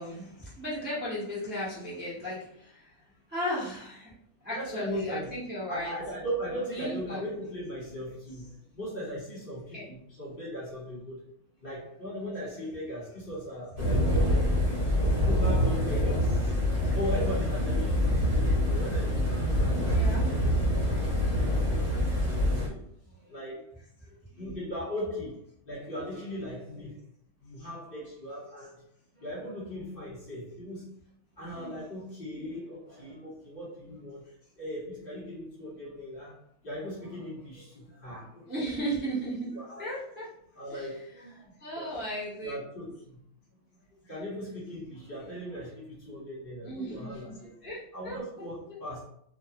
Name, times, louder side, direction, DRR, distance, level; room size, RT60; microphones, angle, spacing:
voice 1, 0.0-2.5 3.3-4.1 4.4-6.0 6.7-7.2 9.7-9.9 19.9-20.3 38.5-39.5 39.8-40.3 40.7-40.9 41.6-42.5 46.6-47.3 47.6-48.2, equal, 10° right, -8 dB, 0.6 m, -35 dB
voice 2, 4.5-5.3 5.7-11.2 11.6-14.6 15.0-16.6 16.9-18.3 18.7-20.7 21.2-21.8 22.3-23.6 24.0-25.4 25.6-27.0 27.4-28.8 29.1-30.9 31.4-34.3 34.5-36.4 36.6-38.5 39.5-40.0 40.5-42.0 42.4-43.2 44.0-47.5 47.9-49.0, equal, 40° left, -7 dB, 1.2 m, -38 dB
sound 1, 13.8-22.7, equal, 50° right, 1.3 m, -26 dB
2.5 x 2.3 x 2.8 m, 0.69 s
omnidirectional pair, 1.5 m